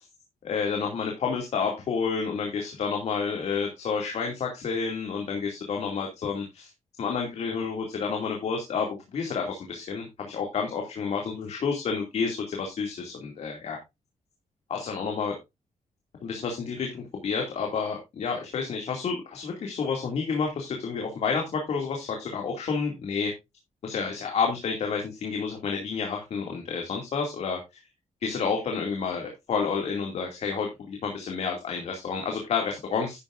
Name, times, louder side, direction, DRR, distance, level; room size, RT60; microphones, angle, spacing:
voice 1, 0.4-6.7 7.0-8.9 9.1-13.8 14.7-15.4 16.2-23.3 23.8-27.6 28.2-33.2, left 5 dB, 60° left, 2 dB, 2.4 m, -30 dB
11.0 x 9.9 x 2.5 m, 0.22 s
wide cardioid pair, 160°, 12 cm